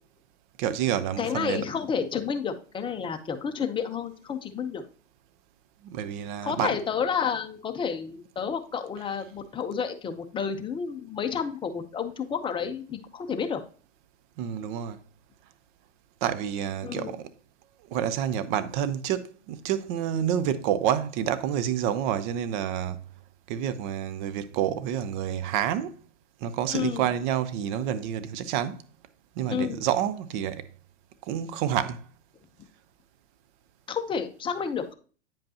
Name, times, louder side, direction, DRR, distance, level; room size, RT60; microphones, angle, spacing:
voice 1, 0.6-1.6 5.8-6.8 14.4-15.0 16.2-17.3 17.9-23.0 23.5-26.0 26.4-28.8 29.4-30.7 31.3-32.0, right 10 dB, 40° right, 0.7 m, -28 dB
voice 2, 1.2-4.8 6.4-13.6 16.8-17.2 26.7-27.0 29.5-29.8 33.9-34.9, left 6 dB, 15° left, 0.7 m, -30 dB
8.9 x 5.2 x 2.8 m
hypercardioid pair, 115°, 36 cm